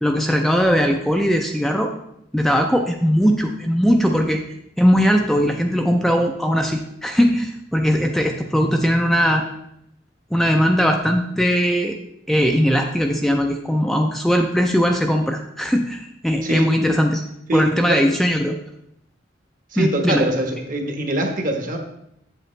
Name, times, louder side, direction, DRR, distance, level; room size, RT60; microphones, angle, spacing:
voice 1, 0.0-1.9 2.3-4.4 4.8-9.4 10.3-12.0 12.3-17.2 17.5-18.6 19.8-20.3, equal, ahead, 3 dB, 0.4 m, -19 dB
voice 2, 17.5-18.0 19.7-21.8, right 1 dB, 45° right, 3 dB, 1.2 m, -23 dB
7.8 x 7.8 x 3.2 m, 0.76 s
head